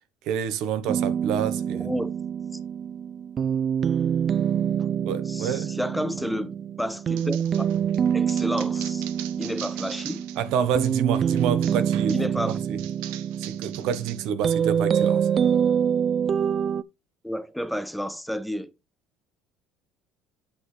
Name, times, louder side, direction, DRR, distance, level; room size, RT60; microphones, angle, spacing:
voice 1, 0.2-1.9 5.0-5.7 10.4-12.8 13.4-15.3, right 8 dB, 70° right, 1.1 m, -28 dB
sound 1, 0.9-16.8, right 8 dB, 40° right, 0.4 m, -26 dB
voice 2, 1.7-2.1 4.8-4.9 5.3-7.4 8.1-9.1 9.3-10.3 12.1-12.6 17.2-18.7, equal, ahead, 0.6 m, -31 dB
sound 2, 7.2-10.5 10.8-14.2, right 13 dB, 90° right, 0.9 m, -42 dB
8.5 x 5.9 x 3.3 m
cardioid pair, 115°, 0 cm